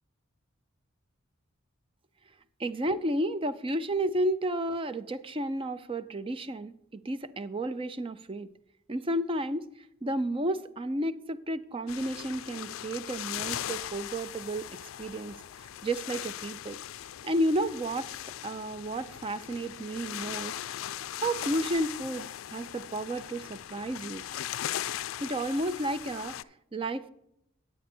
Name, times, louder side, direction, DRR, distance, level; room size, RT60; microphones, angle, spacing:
voice 1, 2.6-8.5 8.9-9.7 10.0-15.4 15.8-16.8 17.2-18.1 18.4-20.6 21.2-24.2 25.2-26.4 26.7-27.1, right 1 dB, 25° right, 12 dB, 0.5 m, -32 dB
sound 1, 11.9-26.4, left 11 dB, 85° left, 0.4 m, -39 dB
9.4 x 9.3 x 4.3 m, 0.78 s
head